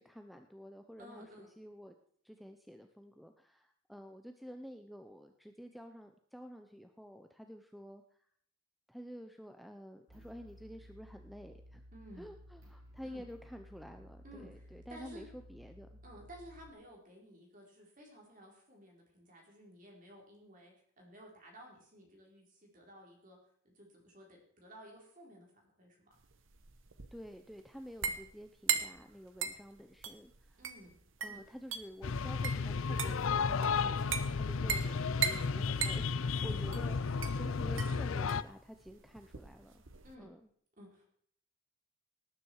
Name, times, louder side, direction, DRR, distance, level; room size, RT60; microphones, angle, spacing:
voice 1, 0.0-1.9 2.2-8.0 8.9-11.8 12.2-16.0 27.1-30.6 31.2-34.0 34.3-39.8 40.2-40.4, equal, ahead, 6 dB, 0.7 m, -50 dB
voice 2, 1.0-1.5 11.9-12.3 13.0-13.2 14.2-15.3 16.0-23.4 23.6-25.5 25.8-26.1 30.6-30.9 31.2-31.5 36.2-36.6 37.0-37.2 40.0-40.3 40.8-41.1, equal, 40° right, 0 dB, 4.6 m, -55 dB
sound 1, 10.1-16.7, equal, 85° right, 7.2 m, -56 dB
sound 2, 26.2-40.2, right 7 dB, 65° right, 1.2 m, -39 dB
sound 3, 32.0-38.4, left 5 dB, 70° left, 0.5 m, -33 dB
18.5 x 9.7 x 4.8 m, 0.62 s
head